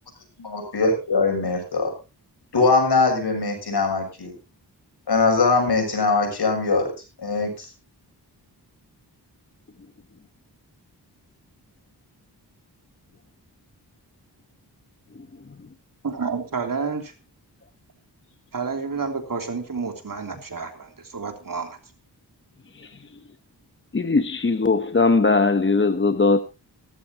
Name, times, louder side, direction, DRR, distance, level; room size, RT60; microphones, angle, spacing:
voice 1, 0.4-1.9 2.5-4.3 5.1-6.9 7.2-7.7, left 3 dB, 75° left, 6.9 m, -21 dB
voice 2, 15.1-15.7 22.7-23.1 23.9-26.4, left 3 dB, 30° left, 0.9 m, -21 dB
voice 3, 16.0-17.1 18.5-21.8, right 5 dB, 55° right, 3.2 m, -30 dB
17.0 x 14.5 x 2.9 m
wide cardioid pair, 80°, 40 cm